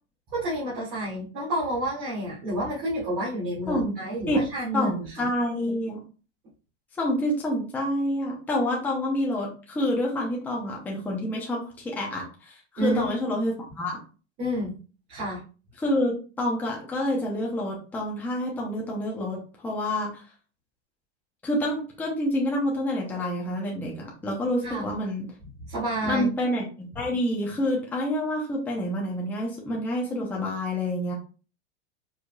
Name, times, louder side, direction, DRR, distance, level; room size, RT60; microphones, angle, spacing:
voice 1, 0.3-5.3 12.8-13.1 14.4-14.8 15.1-15.4 24.6-24.9 25.7-26.3, right 1 dB, 30° right, -9 dB, 2.0 m, -29 dB
voice 2, 3.7-4.0 4.3-4.4 4.7-6.0 7.0-14.0 15.8-20.2 21.4-25.3 26.0-31.1, left 1 dB, 5° left, -3 dB, 0.7 m, -28 dB
4.9 x 3.9 x 2.3 m, 0.36 s
supercardioid pair, 160°, 35 cm